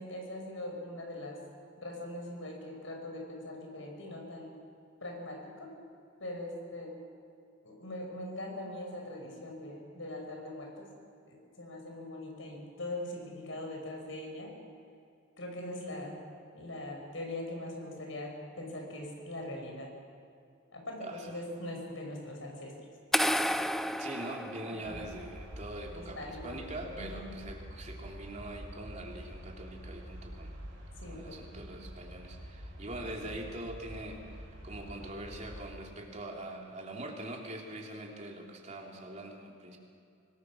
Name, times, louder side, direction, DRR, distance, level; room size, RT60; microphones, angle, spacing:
voice 1, 0.0-1.4 1.8-4.5 5.0-5.7 6.2-7.0 7.6-10.9 11.3-14.5 15.4-16.2 16.5-19.9 20.7-22.7 24.8-25.0 25.9-26.6 27.0-27.3 31.0-31.4 33.2-33.3, left 1 dB, 80° left, 1 dB, 5.8 m, -41 dB
voice 2, 21.0-21.4 23.9-30.5 31.1-39.8, right 1 dB, 35° right, 0 dB, 3.1 m, -43 dB
sound 1, 23.1-25.2, equal, ahead, 0.5 m, -31 dB
sound 2, 24.8-35.7, equal, 70° right, 5.2 m, -47 dB
25.0 x 19.0 x 6.3 m, 2.5 s
head